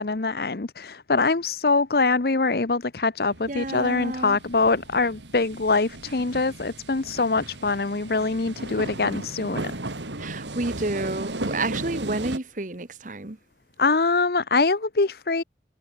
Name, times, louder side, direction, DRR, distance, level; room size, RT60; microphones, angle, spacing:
voice 1, 0.0-9.7 13.8-15.4, left 3 dB, 60° left, 0.9 m, -24 dB
sound 1, 3.2-12.4, right 2 dB, 90° right, 2.8 m, -36 dB
voice 2, 3.5-4.4 10.2-13.4, right 2 dB, 45° right, 1.3 m, -30 dB
head